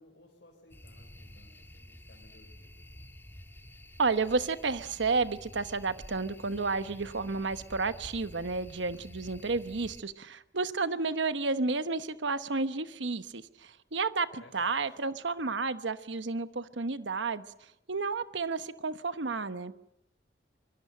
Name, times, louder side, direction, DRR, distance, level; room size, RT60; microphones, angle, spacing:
voice 1, 0.0-3.1 14.3-15.1, left 1 dB, 65° left, -1 dB, 4.4 m, -59 dB
sound 1, 0.7-10.0, left 1 dB, 10° left, 1.9 m, -50 dB
voice 2, 4.0-14.3 14.5-17.4 17.9-19.7, right 4 dB, 80° right, 12 dB, 1.0 m, -31 dB
25.0 x 22.0 x 7.7 m, 0.80 s
head